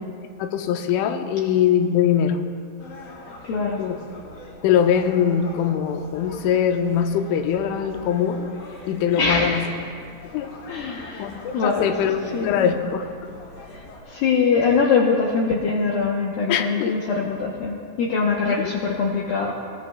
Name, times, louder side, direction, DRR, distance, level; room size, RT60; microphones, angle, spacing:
voice 1, 0.4-2.4 3.8-4.0 4.6-8.5 8.9-9.7 10.3-10.5 11.2-13.1 16.5-16.9 18.5-18.6, left 8 dB, 90° left, 5 dB, 3.1 m, -22 dB
sound 1, 2.8-14.0, left 2 dB, 55° left, 3.8 m, -42 dB
voice 2, 3.4-3.8 8.8-8.9 9.2-9.7 10.7-11.3 11.5-12.7 13.7-19.5, left 5 dB, 75° left, -2 dB, 2.2 m, -23 dB
21.5 x 18.5 x 2.3 m, 2.2 s
omnidirectional pair, 5.4 m